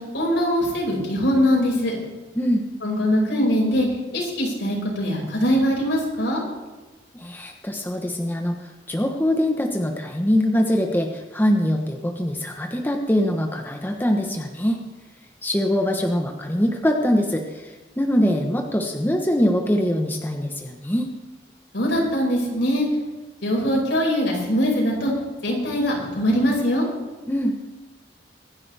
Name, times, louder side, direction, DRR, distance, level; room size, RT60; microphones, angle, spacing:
voice 1, 0.1-1.9 2.8-3.9 4.1-6.4 21.7-22.9 23.4-25.1 25.4-26.8, equal, 75° left, -3 dB, 5.8 m, -22 dB
voice 2, 7.1-14.8 15.4-21.1 27.3-27.6, equal, 10° left, 2 dB, 1.1 m, -23 dB
24.5 x 11.0 x 3.5 m, 1.2 s
head